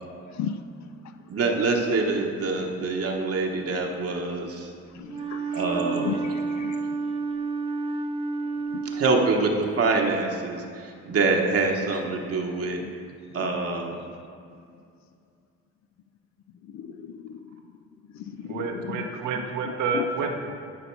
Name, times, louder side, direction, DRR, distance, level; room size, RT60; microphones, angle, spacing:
voice 1, 1.3-4.7 5.5-6.2 8.8-12.8 13.3-14.0, right 3 dB, 50° right, 1 dB, 1.1 m, -25 dB
voice 2, 4.9-5.6 5.9-6.8 8.7-8.8 12.8-12.9 16.7-17.4 18.3-19.1 19.9-20.1, left 8 dB, 65° left, 10 dB, 0.5 m, -35 dB
Wind instrument woodwind instrument, 5.1-9.8, right 4 dB, 20° right, 0.4 m, -30 dB
voice 3, 18.4-20.4, right 4 dB, 80° right, 3 dB, 1.1 m, -29 dB
11.5 x 5.1 x 4.6 m, 2.4 s
cardioid pair, 90°, 30 cm